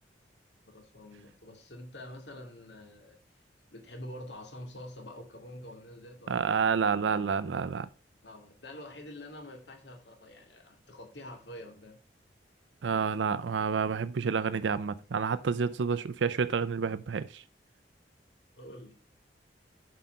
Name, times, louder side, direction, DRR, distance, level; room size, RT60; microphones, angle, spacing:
voice 1, 0.6-3.4 3.7-6.5 8.2-12.0 18.5-19.0, left 1 dB, 70° left, 2.3 m, -46 dB
voice 2, 6.3-7.9 12.8-17.4, right 5 dB, 90° right, 0.5 m, -29 dB
7.4 x 5.7 x 5.0 m
head